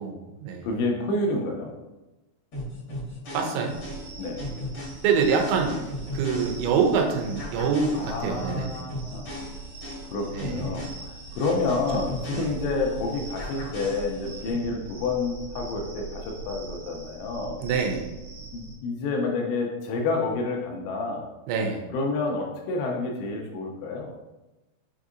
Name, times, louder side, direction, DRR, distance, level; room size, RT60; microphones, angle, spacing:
voice 1, 0.0-0.7 3.3-3.7 5.0-5.8 6.1-8.7 10.3-10.9 11.9-12.1 12.3-12.5 17.6-18.1 21.5-21.9, right 5 dB, 90° right, 2 dB, 3.0 m, -25 dB
voice 2, 0.6-1.8 4.2-4.5 7.9-9.3 10.1-17.6 18.5-21.3 21.9-24.1, left 3 dB, 85° left, 1 dB, 2.7 m, -29 dB
sound 1, 2.5-7.0 7.4-13.0 13.4-14.5, left 1 dB, 65° left, 1.3 m, -38 dB
sound 2, 3.7-18.7, right 4 dB, 70° right, 1.9 m, -41 dB
7.0 x 2.7 x 2.5 m, 1.1 s
omnidirectional pair, 5.1 m